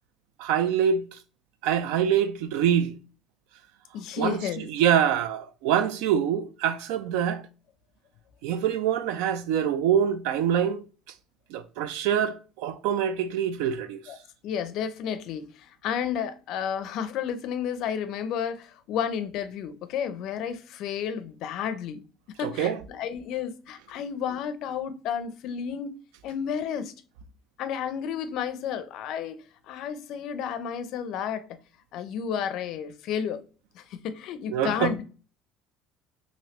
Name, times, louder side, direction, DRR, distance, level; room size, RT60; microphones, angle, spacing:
voice 1, 0.4-1.0 1.6-2.9 4.2-7.4 8.4-10.8 11.5-14.0 22.4-22.8 34.5-34.9, right 9 dB, 85° right, 0.4 m, -25 dB
voice 2, 3.9-4.7 14.1-14.2 14.4-22.0 22.4-26.0 26.2-26.9 27.6-31.5 31.9-33.4 33.7-35.0, left 8 dB, 60° left, 0.4 m, -32 dB
3.1 x 2.6 x 2.8 m
cardioid pair, 125°, 0 cm